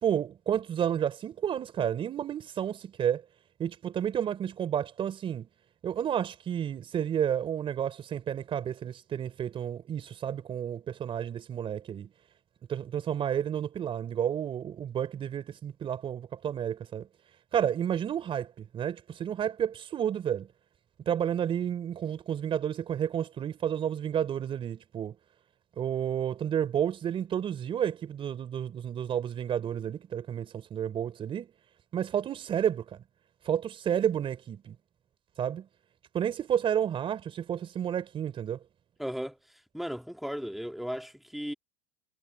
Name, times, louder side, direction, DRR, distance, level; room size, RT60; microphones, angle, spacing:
voice 1, 0.0-3.2 3.6-5.5 5.8-12.1 12.7-17.1 17.5-20.5 21.1-25.1 25.8-31.5 31.9-33.0 33.4-34.7 35.4-35.7 36.1-38.6, right 9 dB, 30° right, 4.2 m, -31 dB
voice 2, 39.0-39.4 39.7-41.5, equal, ahead, 1.8 m, -35 dB
supercardioid pair, 130°, 17 cm